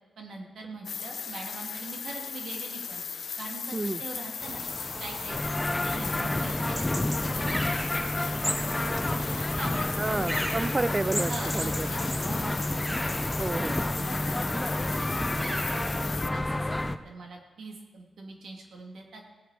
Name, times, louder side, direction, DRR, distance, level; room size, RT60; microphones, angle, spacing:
voice 1, 0.2-3.0 3.4-4.7 5.0-6.9 7.2-10.5 11.3-13.2 14.0-19.3, right 3 dB, 75° right, 1 dB, 2.4 m, -43 dB
sound 1, 0.8-16.3, left 6 dB, 65° left, 0.5 m, -37 dB
sound 2, 4.4-16.1, equal, 10° right, 1.8 m, -37 dB
sound 3, 5.3-17.0, left 1 dB, 20° left, 0.7 m, -30 dB
voice 2, 10.0-11.9 13.4-13.8, right 2 dB, 30° right, 16 dB, 0.4 m, -30 dB
18.0 x 7.9 x 4.9 m, 1.3 s
cardioid pair, 60°, 0 cm